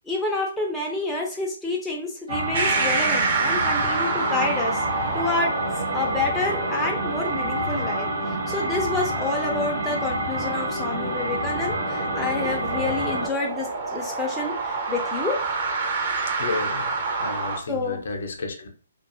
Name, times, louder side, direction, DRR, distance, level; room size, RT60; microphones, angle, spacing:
voice 1, 0.1-4.8 5.1-5.6 5.9-15.4 17.7-18.0, left 3 dB, 5° left, -2 dB, 0.4 m, -28 dB
sound 1, 2.3-13.3, right 1 dB, 70° right, 1.1 m, -28 dB
sound 2, 2.5-17.6, right 4 dB, 50° right, 0.6 m, -29 dB
voice 2, 16.3-18.7, left 3 dB, 60° left, 4 dB, 0.6 m, -32 dB
2.6 x 2.2 x 2.5 m, 0.41 s
figure-of-eight pair, 130°, 0 cm